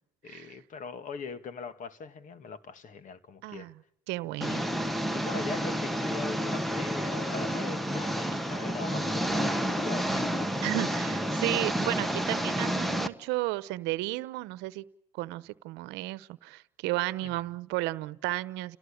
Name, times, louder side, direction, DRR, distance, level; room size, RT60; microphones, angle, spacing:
voice 1, 0.2-3.7 4.5-4.7 5.1-10.4 17.2-17.4, left 5 dB, 45° left, 11 dB, 2.1 m, -41 dB
voice 2, 3.4-3.7 4.1-4.6 10.6-14.9 15.2-18.8, right 19 dB, 80° right, 16 dB, 1.0 m, -33 dB
Engine, 4.4-13.1, equal, ahead, 1.4 m, -30 dB
30.0 x 18.0 x 8.6 m, 0.81 s
supercardioid pair, 100°, 18 cm